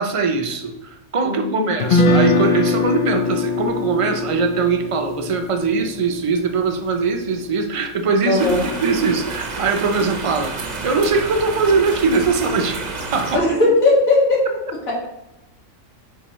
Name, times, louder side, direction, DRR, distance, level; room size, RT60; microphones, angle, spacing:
voice 1, 0.0-12.8 13.1-13.4, right 4 dB, 55° right, 5 dB, 0.3 m, -21 dB
voice 2, 1.2-1.7 8.3-8.6 13.3-14.4, left 2 dB, 75° left, -4 dB, 2.4 m, -17 dB
Guitar, 1.8-7.9, left 3 dB, 55° left, 0.6 m, -22 dB
sound 1, 8.4-13.4, right 3 dB, 40° right, 0.8 m, -30 dB
8.8 x 4.5 x 3.0 m, 0.90 s
omnidirectional pair, 1.4 m